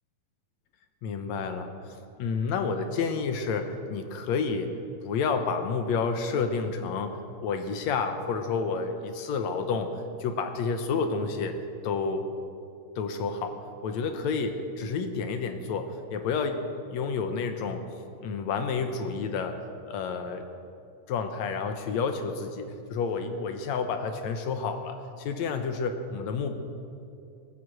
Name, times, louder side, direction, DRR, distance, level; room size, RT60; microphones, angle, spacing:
voice 1, 1.0-4.7 5.0-9.9 10.2-11.6 11.8-12.3 13.0-16.6 16.9-17.8 18.2-19.6 19.9-20.4 21.1-26.5, left 5 dB, 70° left, 7 dB, 1.8 m, -30 dB
18.5 x 8.1 x 7.6 m, 2.5 s
omnidirectional pair, 3.8 m